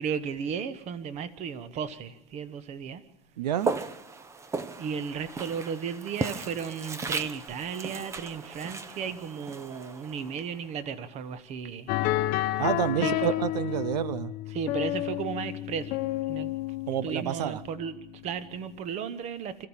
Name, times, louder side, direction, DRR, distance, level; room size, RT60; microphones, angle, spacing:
voice 1, 0.0-3.0 4.8-12.0 13.0-13.3 14.5-16.0 16.3-16.5 17.0-17.9 18.2-19.7, right 7 dB, 35° right, 1.2 m, -34 dB
voice 2, 3.4-3.7 12.6-14.3 16.9-17.6, right 10 dB, 85° right, 0.7 m, -29 dB
Walk footsteps, 3.6-10.7, right 4 dB, 15° right, 0.8 m, -36 dB
sound 1, 11.9-18.0, left 15 dB, 45° left, 1.0 m, -30 dB
25.5 x 14.5 x 7.3 m
supercardioid pair, 135°, 21 cm